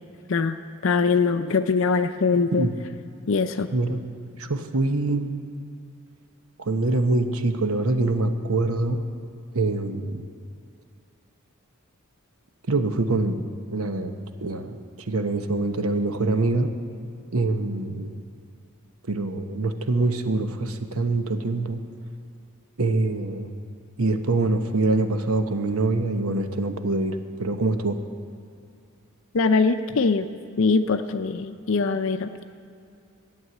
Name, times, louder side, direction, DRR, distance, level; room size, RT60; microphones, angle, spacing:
voice 1, 0.3-2.7 3.3-3.7 29.3-30.3 30.6-32.4, left 4 dB, 60° left, 9 dB, 0.5 m, -22 dB
voice 2, 3.7-4.0 4.4-5.3 6.6-9.0 9.5-10.2 12.7-13.4 13.7-16.7 17.3-18.2 19.1-21.8 22.8-23.5 24.0-28.0, right 2 dB, 75° right, 7 dB, 1.0 m, -25 dB
14.5 x 7.4 x 9.4 m, 2.5 s
head